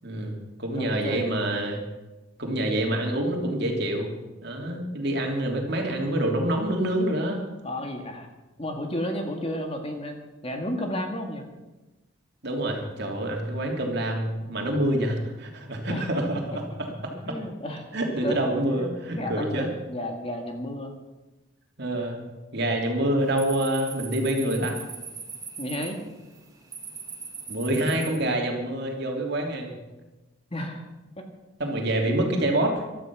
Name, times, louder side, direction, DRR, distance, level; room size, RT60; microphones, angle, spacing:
voice 1, 0.0-1.8 2.4-4.1 4.4-7.4 12.4-17.4 17.9-19.7 21.8-22.2 22.5-24.8 27.5-29.7 31.6-32.8, right 1 dB, 50° right, 1 dB, 3.1 m, -27 dB
voice 2, 0.7-1.2 7.6-8.3 8.6-11.5 15.9-16.1 17.1-18.0 18.2-18.4 18.7-20.9 22.0-22.1 25.6-26.0 30.5-30.9 31.2-31.3, left 1 dB, 25° left, 3 dB, 1.9 m, -32 dB
sound 1, 23.2-28.2, right 6 dB, 15° right, 2.1 m, -40 dB
15.5 x 13.0 x 6.2 m, 1.1 s
head